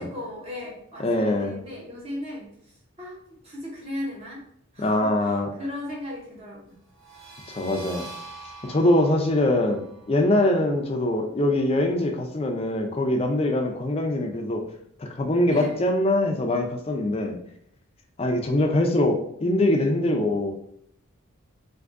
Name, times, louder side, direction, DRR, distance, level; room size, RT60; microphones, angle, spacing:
voice 1, 0.0-2.7 3.0-4.4 4.7-6.8 15.5-15.8 19.8-19.9, left 1 dB, 30° right, -4 dB, 0.7 m, -37 dB
voice 2, 1.0-1.6 4.8-5.5 7.5-8.1 8.6-9.8 10.1-14.6 15.0-17.4 18.2-20.5, left 1 dB, 30° left, 3 dB, 0.4 m, -23 dB
sound 1, 6.9-12.4, right 2 dB, 70° right, 1.0 m, -46 dB
3.4 x 2.6 x 2.5 m, 0.71 s
head